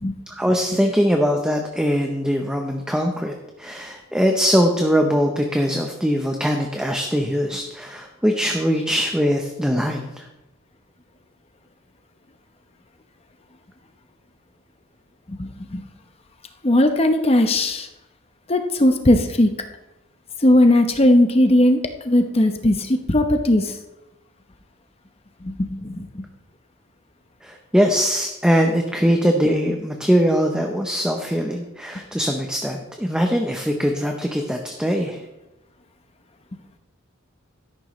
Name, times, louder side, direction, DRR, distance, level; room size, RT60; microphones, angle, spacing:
voice 1, 0.3-10.3 27.4-35.2, equal, 5° right, 3 dB, 0.7 m, -21 dB
voice 2, 15.3-15.8 16.6-17.9 18.5-19.5 20.4-21.8 22.0-23.7 25.4-26.2, left 1 dB, 30° left, 6 dB, 0.9 m, -18 dB
13.0 x 11.0 x 3.2 m, 0.99 s
head